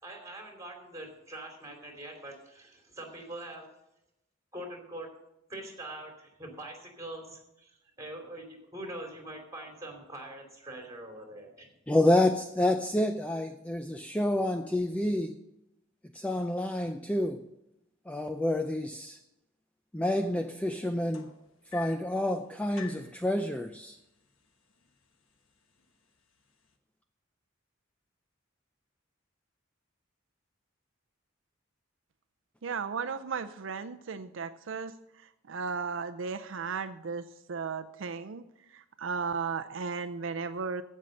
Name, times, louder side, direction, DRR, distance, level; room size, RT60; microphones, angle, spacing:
voice 1, 0.0-3.7 4.5-5.1 5.5-7.7 8.0-11.7, right 1 dB, 15° right, 2 dB, 2.8 m, -43 dB
voice 2, 11.9-15.4 16.1-17.4 18.1-19.2 19.9-21.3 21.7-24.0, left 1 dB, 5° left, 6 dB, 0.4 m, -28 dB
sound 1, 21.1-22.2 22.8-23.2 24.2-24.3 24.7-25.1 25.8-25.9, left 8 dB, 85° left, 1.2 m, -46 dB
voice 3, 32.6-40.8, right 5 dB, 70° right, 9 dB, 0.5 m, -35 dB
15.5 x 5.5 x 6.3 m, 0.87 s
head